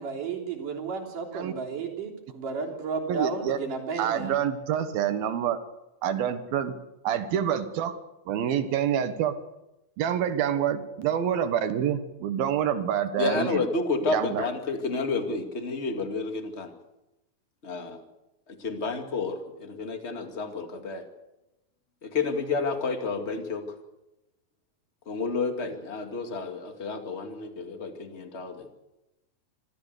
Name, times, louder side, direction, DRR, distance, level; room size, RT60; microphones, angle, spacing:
voice 1, 0.0-4.4, right 5 dB, 65° right, 0 dB, 4.9 m, -33 dB
voice 2, 3.1-3.6 4.0-5.6 6.0-6.7 7.0-8.0 8.3-9.3 10.0-13.6 14.1-14.4, right 9 dB, 80° right, 10 dB, 3.2 m, -27 dB
voice 3, 13.2-16.7 17.6-18.0 18.5-21.0 22.0-23.7 25.0-28.7, left 4 dB, 25° left, 5 dB, 1.8 m, -30 dB
26.0 x 15.5 x 8.2 m, 0.94 s
omnidirectional pair, 4.2 m